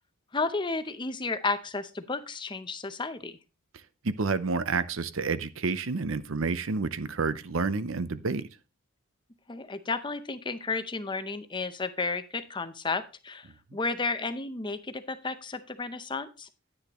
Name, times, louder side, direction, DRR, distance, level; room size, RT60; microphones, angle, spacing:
voice 1, 0.3-3.4 9.5-13.5 13.7-16.5, left 3 dB, 20° left, 0.6 m, -32 dB
voice 2, 4.0-8.4, right 4 dB, 60° right, 0.7 m, -29 dB
10.0 x 9.7 x 3.0 m
head